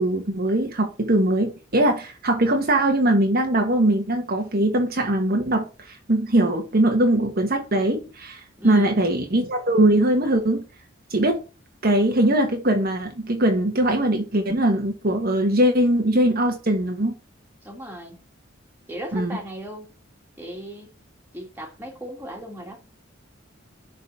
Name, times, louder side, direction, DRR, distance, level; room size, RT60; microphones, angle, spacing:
voice 1, 0.0-10.6 11.1-11.4 11.8-17.1 19.1-19.4, right 1 dB, 50° right, 1.3 m, -21 dB
voice 2, 8.6-9.0 17.6-18.2 18.9-19.9 20.4-20.9 21.3-22.8, right 1 dB, 10° right, 2.3 m, -36 dB
11.0 x 4.2 x 4.2 m
head